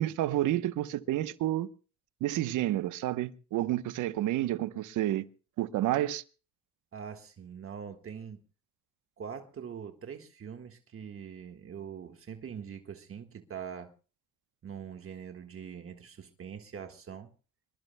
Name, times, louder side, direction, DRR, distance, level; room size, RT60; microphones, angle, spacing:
voice 1, 0.0-1.7 2.2-5.3 5.6-6.2, right 14 dB, 90° right, 1.0 m, -30 dB
voice 2, 6.9-8.4 9.2-13.9 14.6-17.3, right 7 dB, 45° right, 1.6 m, -43 dB
25.0 x 21.5 x 2.2 m
cardioid pair, 90°, 30 cm